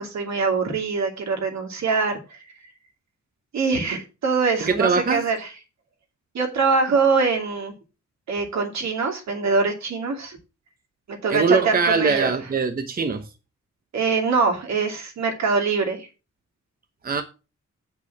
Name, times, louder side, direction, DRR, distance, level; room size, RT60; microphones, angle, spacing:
voice 1, 0.0-2.4 3.5-5.4 6.3-7.7 8.3-10.4 11.2-12.3 13.9-16.1, right 4 dB, 65° right, 2.6 m, -23 dB
voice 2, 4.6-5.2 11.3-13.3 17.0-17.2, right 4 dB, 30° right, 0.8 m, -22 dB
8.4 x 5.6 x 5.9 m
wide cardioid pair, 170°, 30 cm